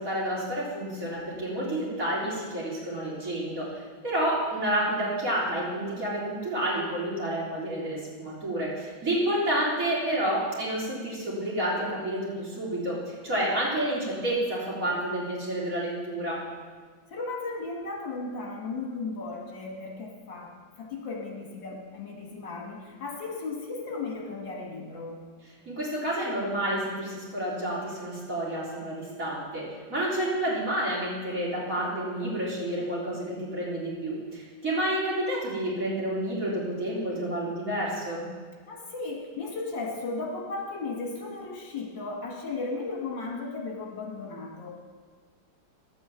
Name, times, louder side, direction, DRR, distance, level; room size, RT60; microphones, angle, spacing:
voice 1, 0.0-16.4 25.7-38.3, right 1 dB, 45° right, -7 dB, 4.1 m, -29 dB
voice 2, 17.1-20.5 20.8-25.2 38.7-44.8, left 3 dB, 75° left, 0 dB, 2.7 m, -35 dB
11.5 x 8.6 x 7.2 m, 1.5 s
omnidirectional pair, 2.1 m